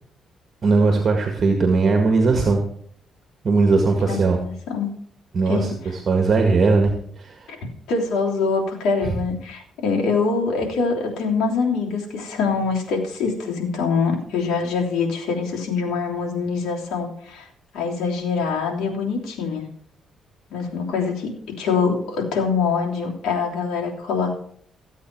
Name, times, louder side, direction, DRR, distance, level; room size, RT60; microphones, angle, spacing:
voice 1, 0.6-2.6 3.4-4.4 5.3-7.5 9.0-9.2, right 3 dB, 45° right, 4 dB, 1.9 m, -19 dB
voice 2, 4.4-4.9 5.5-5.7 7.5-7.6 7.9-17.5 17.7-19.6 20.5-24.3, left 5 dB, 85° left, -1 dB, 3.2 m, -24 dB
15.0 x 8.3 x 4.7 m, 0.63 s
cardioid pair, 90°, 0 cm